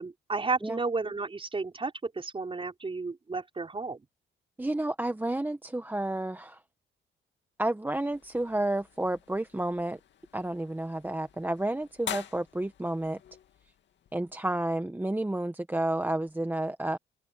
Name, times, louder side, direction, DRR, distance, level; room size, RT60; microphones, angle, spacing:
voice 1, 0.0-4.0, right 4 dB, 25° right, 5.5 m, -32 dB
voice 2, 4.6-6.6 7.6-10.0 10.3-13.2 14.1-17.0, right 1 dB, 10° right, 1.3 m, -31 dB
sound 1, 7.9-14.4, left 9 dB, 65° left, 2.5 m, -46 dB
open air
cardioid pair, 90°, 20 cm